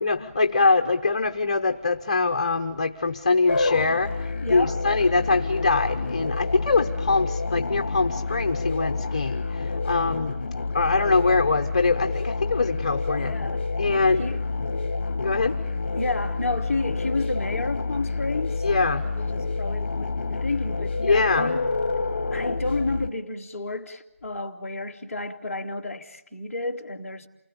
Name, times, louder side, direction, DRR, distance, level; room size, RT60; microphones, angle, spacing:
voice 1, 0.0-4.2 4.5-9.4 9.8-10.4 10.7-13.3 13.8-14.2 15.2-15.6 18.6-19.0 21.1-21.6, left 3 dB, 30° left, 1.0 m, -23 dB
sound 1, 3.5-23.1, left 4 dB, 45° left, 1.3 m, -28 dB
voice 2, 4.4-4.9 13.2-13.7 14.2-14.4 15.9-21.6 22.3-27.3, left 2 dB, 5° left, 1.5 m, -31 dB
28.5 x 20.0 x 8.6 m
figure-of-eight pair, 175°, 7 cm